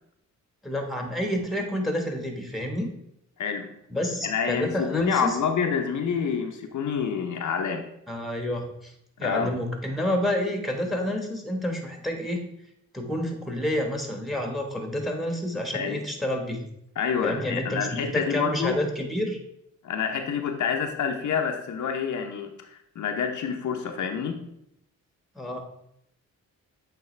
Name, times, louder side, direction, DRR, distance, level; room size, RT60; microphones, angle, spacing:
voice 1, 0.6-2.9 3.9-5.4 8.1-8.9 9.2-12.5 12.9-16.6 17.2-19.4 25.3-25.6, left 1 dB, ahead, 3 dB, 1.3 m, -29 dB
voice 2, 3.4-3.7 4.2-7.9 9.2-9.5 15.7-16.1 17.0-18.8 19.8-24.5, left 6 dB, 70° left, 4 dB, 0.7 m, -28 dB
8.2 x 3.5 x 3.2 m, 0.77 s
cardioid pair, 75°, 31 cm